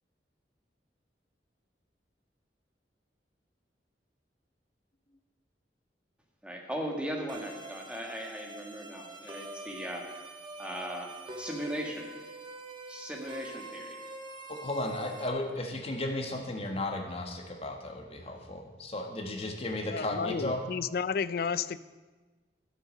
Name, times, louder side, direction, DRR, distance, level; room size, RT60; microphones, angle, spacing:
voice 1, 6.4-10.1 10.6-11.1 11.4-12.1 12.9-14.0, equal, 5° right, 1 dB, 1.6 m, -38 dB
sound 1, 7.3-15.3, right 2 dB, 25° right, 1.2 m, -45 dB
voice 2, 14.5-20.6, left 1 dB, 35° left, 2 dB, 1.5 m, -34 dB
voice 3, 19.9-21.8, left 6 dB, 55° left, 16 dB, 0.4 m, -32 dB
12.0 x 7.5 x 6.4 m, 1.3 s
head